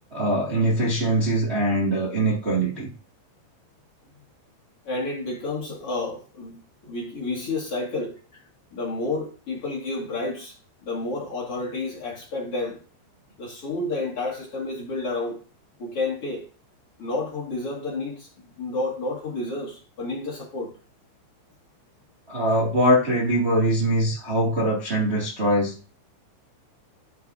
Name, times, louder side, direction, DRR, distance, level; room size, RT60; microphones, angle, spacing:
voice 1, 0.1-2.9 22.3-25.9, right 1 dB, 85° right, 0.5 m, -22 dB
voice 2, 4.8-8.2 8.7-10.6 10.8-12.8 13.4-15.4 15.8-16.5 17.0-18.3 18.6-20.7, left 2 dB, 45° left, 1.9 m, -30 dB
11.5 x 6.0 x 2.7 m
omnidirectional pair, 5.5 m